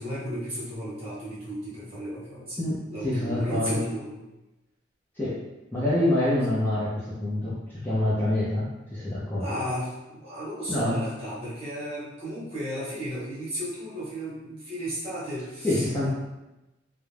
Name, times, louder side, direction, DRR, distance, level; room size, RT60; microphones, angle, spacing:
voice 1, 0.0-2.6 2.9-4.2 9.4-16.1, equal, 30° right, -9 dB, 1.0 m, -34 dB
voice 2, 2.6-3.8 5.2-5.4 5.7-7.6 7.8-9.5 10.7-11.0 15.6-16.1, left 1 dB, 10° left, -10 dB, 0.5 m, -26 dB
2.4 x 2.1 x 3.1 m, 1.0 s
head